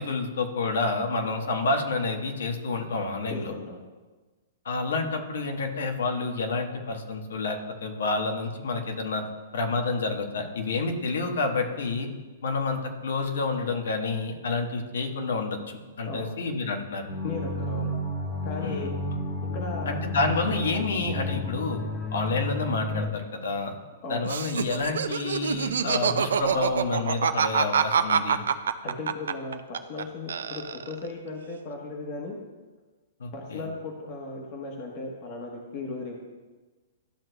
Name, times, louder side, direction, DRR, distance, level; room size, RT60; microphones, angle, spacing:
voice 1, 0.0-3.5 4.6-9.2 9.5-12.1 12.4-17.1 18.6-18.9 19.9-21.8 22.1-23.7 24.1-28.4 33.2-33.6, left 3 dB, 85° left, 3 dB, 1.3 m, -29 dB
voice 2, 3.3-3.8 16.0-16.3 17.2-18.0 18.4-18.9 19.4-20.0 24.0-24.3 28.8-32.4 33.3-36.2, left 3 dB, 40° left, 0 dB, 1.1 m, -36 dB
sound 1, 17.1-23.1, left 1 dB, 20° left, 1.3 m, -31 dB
Laughter, 24.2-30.0 30.3-31.1, right 7 dB, 90° right, 0.5 m, -25 dB
13.0 x 6.2 x 2.3 m, 1.3 s
hypercardioid pair, 155°, 0 cm